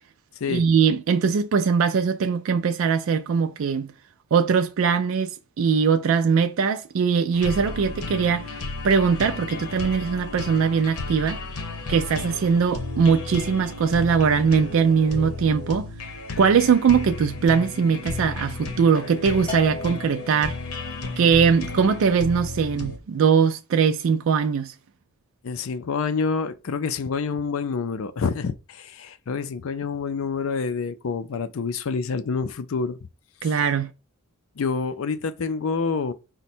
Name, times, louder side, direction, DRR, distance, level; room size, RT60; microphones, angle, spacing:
voice 1, 0.5-3.9 4.3-11.4 11.9-15.9 16.4-20.6 21.2-24.7 33.4-33.9, right 6 dB, 65° right, 0.3 m, -21 dB
sound 1, 7.3-23.0, left 3 dB, 85° left, 0.9 m, -33 dB
Bell, 19.5-20.8, left 4 dB, 5° left, 0.7 m, -36 dB
voice 2, 25.4-33.0 34.6-36.1, left 5 dB, 70° left, 0.4 m, -27 dB
5.1 x 2.2 x 4.3 m
head